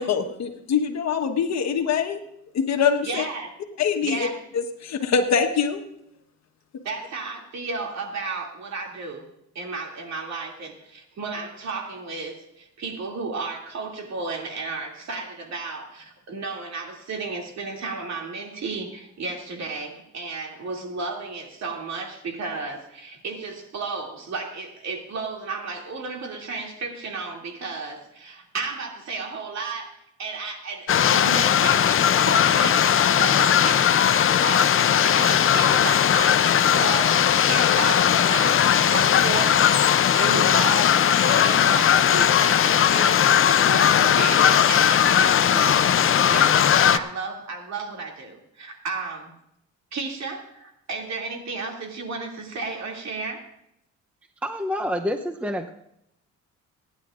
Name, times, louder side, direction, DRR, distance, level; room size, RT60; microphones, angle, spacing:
voice 1, 0.0-2.2 2.5-3.2 3.8-4.3 4.5-5.8, left 6 dB, 60° left, 6 dB, 1.3 m, -24 dB
voice 2, 3.0-3.5 4.0-4.4 6.8-9.2 9.5-39.7 40.1-46.6 46.9-49.3 49.9-53.4, right 4 dB, 60° right, 1 dB, 2.6 m, -33 dB
sound 1, 30.9-47.0, left 9 dB, 45° left, 0.6 m, -18 dB
voice 3, 54.4-55.7, equal, 5° right, 6 dB, 0.7 m, -27 dB
24.5 x 10.5 x 2.5 m, 0.78 s
cardioid pair, 90°, 30 cm